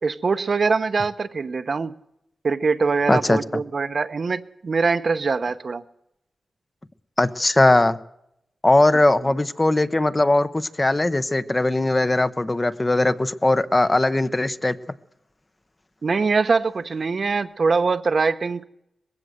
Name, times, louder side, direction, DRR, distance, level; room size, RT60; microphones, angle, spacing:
voice 1, 0.0-2.0 2.4-5.8 16.0-18.6, right 4 dB, 45° right, 0.9 m, -23 dB
voice 2, 3.1-3.4 7.2-8.0 8.6-14.8, left 2 dB, 20° left, 0.7 m, -19 dB
20.5 x 16.0 x 7.9 m
wide cardioid pair, 160°, 0 cm